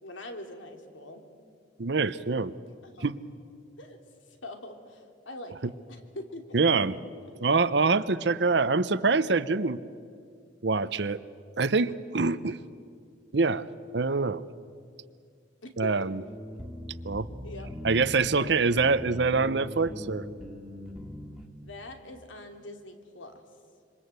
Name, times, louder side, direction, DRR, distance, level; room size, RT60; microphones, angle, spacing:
voice 1, 0.0-1.3 2.8-3.1 3.8-4.0 4.3-6.9 15.6-16.1 17.4-17.7 18.3-18.6 21.6-23.4, left 1 dB, 80° left, 6 dB, 2.8 m, -43 dB
voice 2, 1.8-2.5 3.0-3.2 6.5-6.9 7.4-9.8 10.6-11.2 11.6-12.6 13.3-13.7 13.9-14.4 15.8-16.2 17.0-17.3 17.8-20.2, right 4 dB, 60° right, 15 dB, 0.8 m, -25 dB
sound 1, 16.3-21.5, left 1 dB, ahead, 2.3 m, -41 dB
27.0 x 24.5 x 8.1 m, 2.3 s
head